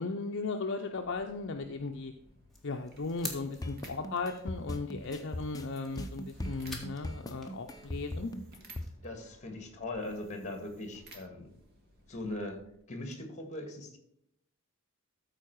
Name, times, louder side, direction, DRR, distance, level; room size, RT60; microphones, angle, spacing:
voice 1, 0.0-2.1 2.6-8.3, left 3 dB, 55° left, 4 dB, 0.6 m, -36 dB
sound 1, 0.9-12.8, right 1 dB, 45° right, 1.8 m, -58 dB
sound 2, 2.5-8.9, left 2 dB, ahead, 1.6 m, -49 dB
sound 3, 3.6-8.9, left 1 dB, 15° left, 0.7 m, -38 dB
voice 2, 9.0-11.5 12.1-12.6 12.9-14.0, left 2 dB, 35° left, 5 dB, 1.7 m, -40 dB
13.5 x 4.6 x 4.6 m, 0.77 s
head